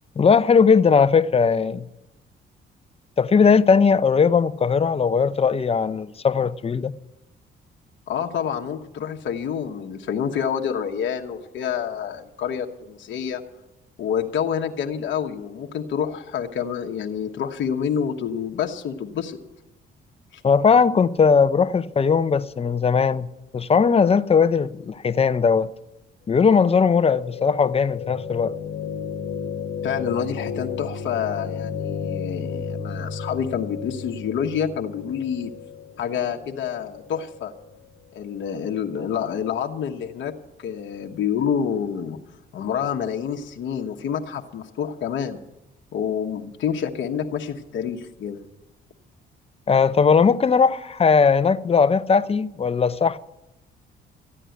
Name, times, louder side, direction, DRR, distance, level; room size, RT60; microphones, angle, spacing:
voice 1, 0.2-1.9 3.2-6.9 20.4-23.3 23.5-25.7 26.3-28.5 49.7-53.2, left 5 dB, 30° left, 0.7 m, -18 dB
voice 2, 8.1-13.4 14.0-19.4 20.3-20.4 29.8-35.5 36.0-37.5 38.1-40.3 40.6-42.2 42.5-45.4 45.9-48.4, left 8 dB, 70° left, 1.1 m, -28 dB
sound 1, 26.4-38.5, left 6 dB, 90° left, 1.1 m, -33 dB
14.0 x 9.9 x 9.1 m
cardioid pair, 90°, 20 cm